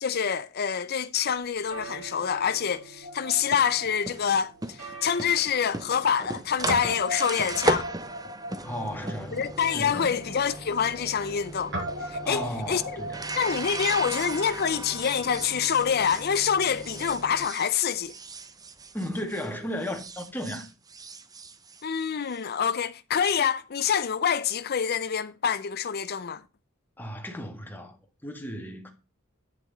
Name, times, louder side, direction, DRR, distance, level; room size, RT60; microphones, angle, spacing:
voice 1, 0.0-7.9 9.3-11.7 12.1-12.4 12.7-12.8 13.4-18.1 21.8-26.4, left 7 dB, 50° left, 0.5 m, -26 dB
sound 1, 1.6-20.4, right 4 dB, 85° right, 5.6 m, -51 dB
Guitar, 3.0-5.4 5.7-5.8 6.7-14.5, equal, 55° right, 6.1 m, -38 dB
sound 2, 3.3-19.5 19.8-22.4, right 2 dB, 20° right, 0.8 m, -36 dB
voice 2, 8.6-10.3 12.2-13.3 15.2-15.3 18.9-20.6 27.0-28.0 28.2-28.9, equal, 10° left, 1.8 m, -35 dB
8.4 x 7.9 x 4.0 m
head